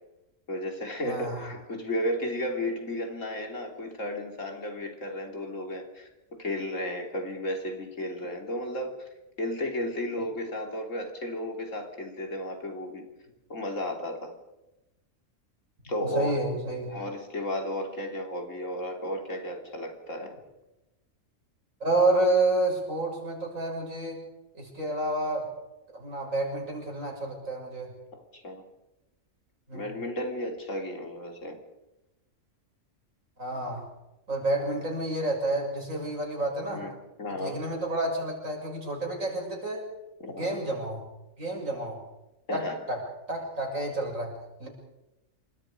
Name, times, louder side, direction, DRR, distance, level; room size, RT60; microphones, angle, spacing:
voice 1, 0.5-9.1 9.4-13.1 13.5-14.3 15.8-16.4 16.9-20.4 28.1-28.6 29.7-31.6 36.7-37.6 40.2-40.6 42.5-42.8, left 1 dB, 75° left, 3 dB, 3.7 m, -34 dB
voice 2, 1.1-1.4 16.0-17.0 21.8-24.2 24.5-25.5 25.9-27.9 29.7-29.9 33.4-33.9 34.3-36.9 37.3-39.9 40.3-41.1 41.4-42.0 42.5-43.0 43.3-44.7, right 2 dB, 85° right, 0 dB, 7.3 m, -29 dB
28.0 x 24.5 x 5.1 m, 0.99 s
omnidirectional pair, 1.3 m